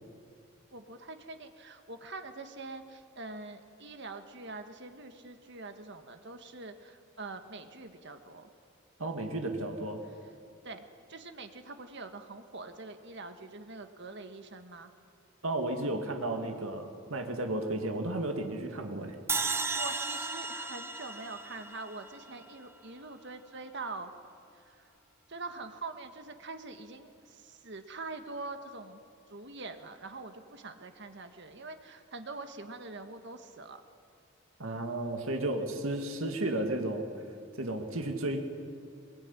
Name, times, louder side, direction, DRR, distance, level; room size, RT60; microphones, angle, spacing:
voice 1, 0.7-8.5 10.6-14.9 19.5-24.1 24.5-24.9 25.3-29.0 29.3-33.8, right 3 dB, 55° right, 7 dB, 1.6 m, -44 dB
voice 2, 9.0-10.0 15.4-19.2 34.6-37.1 37.5-38.4, right 1 dB, 70° right, 4 dB, 2.3 m, -33 dB
sound 1, 19.3-22.5, right 3 dB, 10° right, 0.8 m, -34 dB
23.0 x 22.5 x 9.8 m, 2.4 s
head